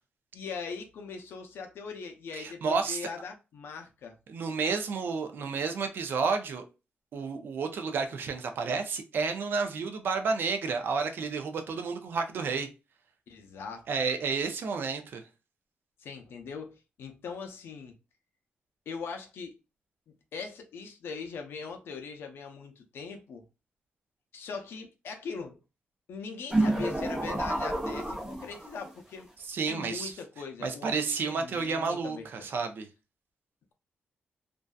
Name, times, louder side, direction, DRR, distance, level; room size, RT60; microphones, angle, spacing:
voice 1, 0.3-4.2 13.3-13.9 16.0-17.9 18.9-19.6 20.3-23.4 24.3-25.6 26.1-29.3 29.7-32.5, left 5 dB, 85° left, 0.5 m, -41 dB
voice 2, 2.4-3.1 4.3-6.6 7.1-12.7 13.9-15.2 29.5-30.1 30.6-32.9, right 5 dB, 65° right, 0.5 m, -31 dB
sound 1, 26.5-28.9, right 1 dB, 10° right, 0.6 m, -29 dB
2.6 x 2.2 x 2.3 m
wide cardioid pair, 150°, 4 cm